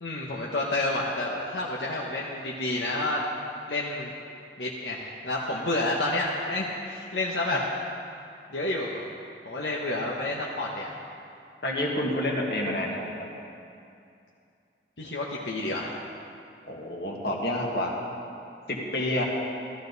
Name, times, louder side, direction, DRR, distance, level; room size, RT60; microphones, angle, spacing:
voice 1, 0.0-3.2 3.7-4.1 4.6-7.6 8.5-9.1 9.4-11.0 15.0-16.0, left 2 dB, 80° left, -4 dB, 1.2 m, -29 dB
voice 2, 11.6-13.3 16.7-17.9 18.7-19.3, left 1 dB, 60° left, -1 dB, 1.9 m, -29 dB
14.5 x 13.5 x 4.1 m, 2.5 s
head